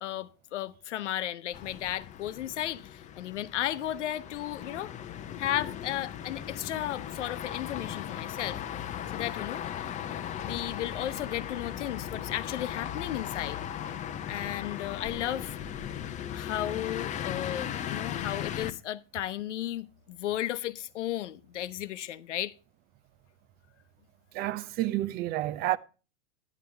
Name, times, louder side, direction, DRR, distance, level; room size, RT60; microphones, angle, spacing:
voice 1, 0.0-4.9 5.4-8.6 9.1-9.7 10.4-13.6 14.3-15.6 16.3-22.5, left 12 dB, 75° left, 0.9 m, -34 dB
sound 1, 1.5-18.7, left 10 dB, 20° left, 0.7 m, -37 dB
voice 2, 24.3-25.8, right 15 dB, 25° right, 0.5 m, -29 dB
11.0 x 8.8 x 3.4 m
hypercardioid pair, 125°, 36 cm